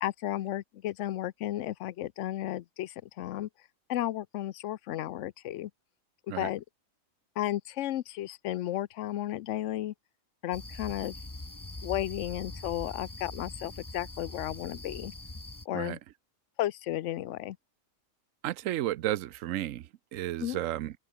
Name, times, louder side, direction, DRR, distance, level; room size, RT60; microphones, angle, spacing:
voice 1, 0.0-3.5 3.9-5.7 6.3-6.6 7.4-9.9 10.4-11.1 11.8-15.1 15.7-16.0 16.6-17.6 20.4-20.6, left 13 dB, 70° left, 0.9 m, -33 dB
sound 1, 10.5-15.6, left 2 dB, 15° left, 1.4 m, -42 dB
voice 2, 18.4-20.9, right 14 dB, 75° right, 1.0 m, -33 dB
open air
omnidirectional pair, 1.4 m